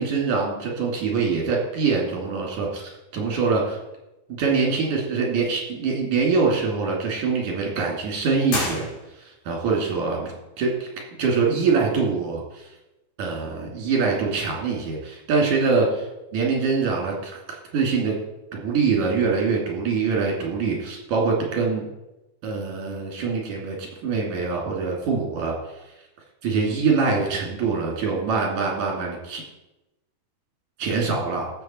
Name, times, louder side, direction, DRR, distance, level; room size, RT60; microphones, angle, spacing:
voice 1, 0.0-3.8 4.3-8.9 9.2-10.3 10.6-10.9 11.2-12.6 13.2-16.0 16.3-18.1 18.5-21.9 22.4-25.5 26.4-29.4 30.8-31.5, right 4 dB, 75° right, -1 dB, 4.1 m, -24 dB
sound 1, 8.4-9.5, left 2 dB, 80° left, 4.9 m, -30 dB
15.5 x 6.9 x 4.4 m, 0.97 s
omnidirectional pair, 3.5 m